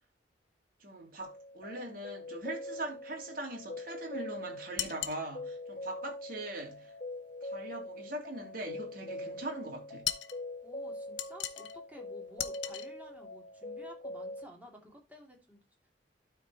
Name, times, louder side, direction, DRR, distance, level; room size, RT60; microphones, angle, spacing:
voice 1, 0.8-6.9 7.4-10.1, right 1 dB, 50° right, 2.9 m, -41 dB
sound 1, 1.2-14.4, left 1 dB, 35° left, 1.6 m, -43 dB
sound 2, 4.8-5.2 10.0-10.4 11.2-11.8 12.4-12.9, left 12 dB, 80° left, 0.8 m, -36 dB
voice 2, 10.6-15.9, equal, 10° right, 2.6 m, -53 dB
12.5 x 4.7 x 4.1 m
head